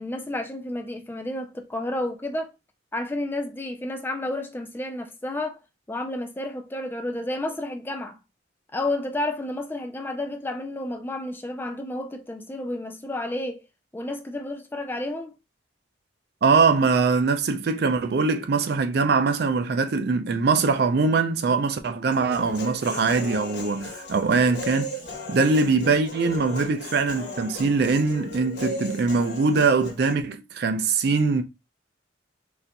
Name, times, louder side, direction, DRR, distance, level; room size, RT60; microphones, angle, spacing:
voice 1, 0.0-2.5 2.9-5.6 5.9-8.2 8.7-13.6 13.9-15.3, left 1 dB, 10° left, 0.3 m, -31 dB
voice 2, 16.4-24.9 25.3-31.4, right 4 dB, 55° right, 0.4 m, -22 dB
Human voice, 22.1-30.1, left 2 dB, 65° left, 1.2 m, -37 dB
4.1 x 2.6 x 2.2 m
head